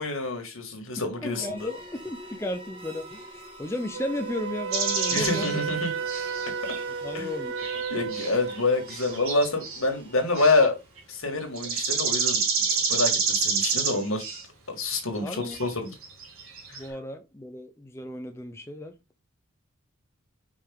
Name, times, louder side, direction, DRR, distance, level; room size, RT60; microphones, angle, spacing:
voice 1, 0.0-1.7 5.1-5.9 7.1-7.3 7.9-10.8 11.1-12.4 12.9-14.2 14.7-15.9 16.7-16.8, left 2 dB, 70° left, 2.2 m, -27 dB
voice 2, 1.0-5.6 7.0-8.1 15.2-15.6 16.7-19.0, left 1 dB, 10° left, 0.6 m, -35 dB
sound 1, 1.1-11.0, right 1 dB, 25° right, 1.8 m, -45 dB
Wind instrument woodwind instrument, 3.9-8.7, right 6 dB, 55° right, 0.3 m, -33 dB
sound 2, 4.7-6.8 7.6-8.6 8.9-9.8 10.3-10.6 11.0-11.1 11.6-14.4 15.1-15.2 15.4-15.7 16.0-16.8, right 5 dB, 80° right, 3.2 m, -28 dB
5.6 x 5.0 x 3.7 m
head